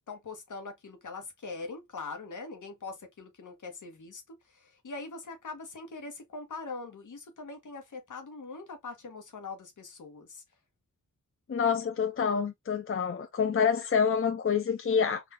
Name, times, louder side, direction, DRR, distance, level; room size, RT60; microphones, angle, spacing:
voice 1, 0.1-4.2 4.5-10.4, left 3 dB, 70° left, 1.1 m, -42 dB
voice 2, 11.5-15.2, left 6 dB, 40° left, 0.6 m, -27 dB
3.9 x 2.4 x 2.5 m
cardioid pair, 60°, 32 cm